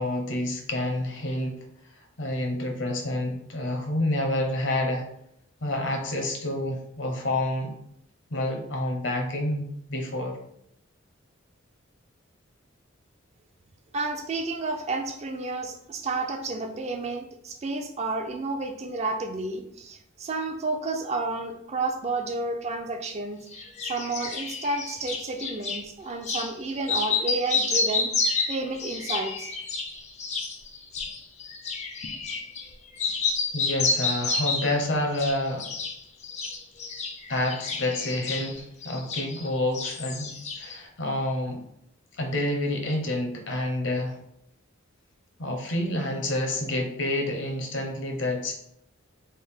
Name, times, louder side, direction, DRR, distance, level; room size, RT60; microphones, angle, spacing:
voice 1, 0.0-1.6 2.2-5.1 5.6-7.7 8.3-10.4 33.5-35.7 37.3-41.6 42.2-44.2 45.4-48.5, left 1 dB, 65° left, 2 dB, 0.7 m, -28 dB
voice 2, 13.9-23.5 23.8-28.1 28.5-29.5, right 3 dB, 30° right, 5 dB, 0.3 m, -31 dB
sound 1, 23.5-25.8 26.2-26.5 26.8-32.7 33.0-34.8 35.1-36.0 36.2-39.5 39.7-40.8, left 4 dB, 35° left, 0.4 m, -29 dB
3.4 x 2.4 x 3.5 m, 0.74 s
head